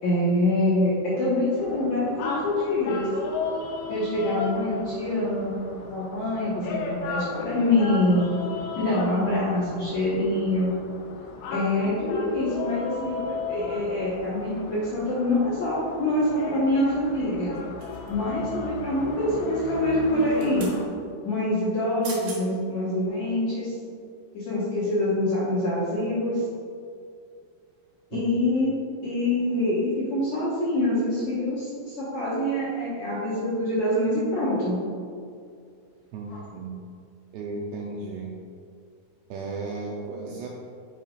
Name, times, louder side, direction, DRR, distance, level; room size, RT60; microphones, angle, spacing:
voice 1, 0.0-3.1 3.9-8.3 8.8-10.8 11.5-17.5 18.1-20.7 21.2-23.7 24.3-26.4 28.1-28.7 29.0-34.8, left 1 dB, 65° left, -10 dB, 1.9 m, -25 dB
sound 1, 1.6-20.8, left 4 dB, 80° left, 2.3 m, -36 dB
sound 2, 17.8-18.4 20.1-20.8 21.8-21.9 22.0-22.4 23.0-23.1, right 3 dB, 60° right, 2.3 m, -41 dB
voice 2, 36.1-36.8 37.3-38.3 39.3-40.5, right 3 dB, 85° right, -1 dB, 2.4 m, -34 dB
8.8 x 6.8 x 2.4 m, 2.3 s
omnidirectional pair, 5.2 m